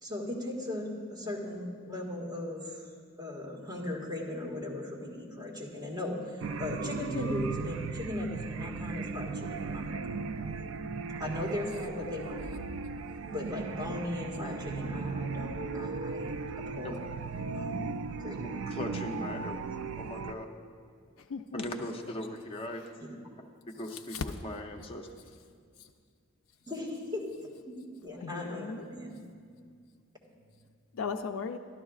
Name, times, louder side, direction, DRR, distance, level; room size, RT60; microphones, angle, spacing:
voice 1, 0.0-2.9 3.2-10.0 11.2-12.6 13.3-17.0 17.5-17.8 18.1-18.5 20.3-20.4 23.1-23.2 26.7-29.2 30.6-30.7, left 1 dB, 20° right, -5 dB, 1.6 m, -38 dB
sound 1, 6.4-20.3, right 4 dB, 70° right, 0.3 m, -37 dB
voice 2, 18.4-19.6 20.0-20.5 21.5-22.8 23.7-24.2 24.4-25.1, left 1 dB, 25° left, 2 dB, 0.7 m, -39 dB
voice 3, 21.2-22.1 22.7-22.9 23.8-24.2 25.8-25.9 28.1-28.9 30.9-31.6, left 5 dB, 80° left, 4 dB, 0.4 m, -38 dB
12.5 x 12.0 x 2.4 m, 2.1 s
head